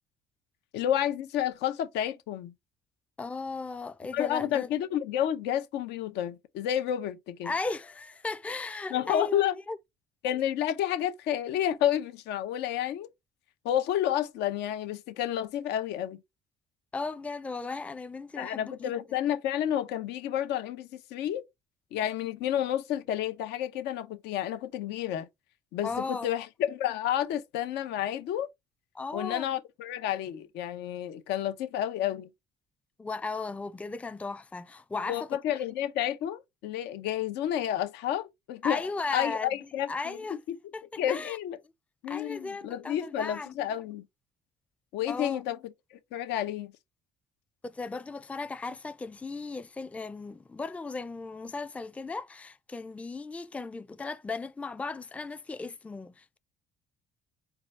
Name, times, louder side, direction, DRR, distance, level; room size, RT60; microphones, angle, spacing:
voice 1, 0.7-2.5 4.1-7.5 8.9-9.5 10.2-13.1 13.6-16.2 18.4-21.4 21.9-25.3 25.7-28.5 29.1-32.3 35.1-38.9 39.1-40.6 41.0-41.6 42.0-44.1 44.9-46.7, left 11 dB, 85° left, 0.7 m, -30 dB
voice 2, 3.2-4.7 7.4-9.8 16.9-18.9 25.8-26.3 28.9-29.5 33.0-35.3 38.6-39.5 39.9-40.4 40.7-41.4 42.1-43.6 45.1-45.4 47.6-56.4, left 3 dB, 10° left, 0.3 m, -36 dB
4.6 x 2.3 x 4.1 m
cardioid pair, 110°, 17 cm